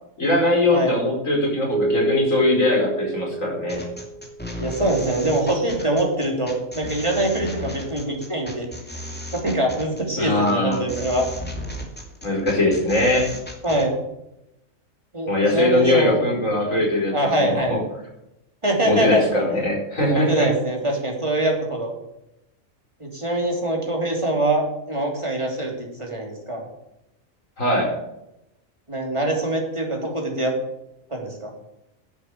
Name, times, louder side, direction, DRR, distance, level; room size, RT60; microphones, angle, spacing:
voice 1, 0.2-3.9 10.1-10.8 12.2-13.4 15.3-17.8 18.8-20.5 27.6-27.9, left 1 dB, 70° left, -2 dB, 5.1 m, -21 dB
Keyboard (musical), 1.7-4.7, right 2 dB, 60° right, 0.5 m, -28 dB
sound 1, 3.7-13.9, left 1 dB, 5° left, 2.4 m, -35 dB
voice 2, 4.6-8.7 9.3-11.3 13.6-13.9 15.1-16.2 17.1-17.8 18.6-19.4 20.1-21.9 23.0-26.6 28.9-30.5 31.1-31.5, right 1 dB, 20° right, 0 dB, 3.1 m, -24 dB
10.5 x 7.9 x 8.1 m, 0.86 s
omnidirectional pair, 1.4 m